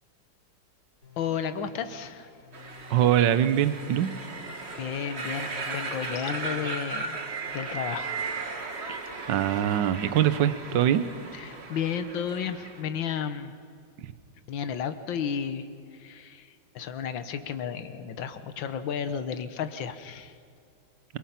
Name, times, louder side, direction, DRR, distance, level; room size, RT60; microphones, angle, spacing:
sound 1, 1.0-8.3, left 6 dB, 55° left, 4.6 m, -53 dB
voice 1, 1.2-2.3 4.8-7.2 7.5-8.2 11.3-13.5 14.5-20.4, left 7 dB, 85° left, 10 dB, 1.8 m, -33 dB
sound 2, 2.5-12.8, right 4 dB, 35° right, 1.7 m, -36 dB
voice 2, 2.9-4.1 8.9-9.0 9.3-11.0 14.0-14.1, right 10 dB, 75° right, 12 dB, 1.5 m, -23 dB
28.0 x 22.5 x 5.8 m, 2.3 s
omnidirectional pair, 2.0 m